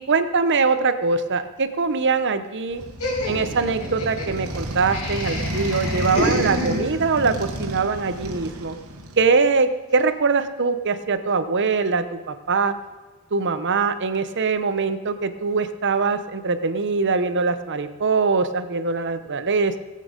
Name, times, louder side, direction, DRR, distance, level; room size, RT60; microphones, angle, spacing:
voice 1, 0.0-2.8 3.3-8.7 9.2-12.7 13.3-19.8, right 4 dB, 55° right, 11 dB, 0.9 m, -22 dB
Motorcycle, 2.7-9.4, right 1 dB, 85° right, 1.6 m, -31 dB
Laughter, 3.0-7.2, left 1 dB, 80° left, 4.4 m, -29 dB
18.5 x 8.5 x 5.2 m, 1.3 s
head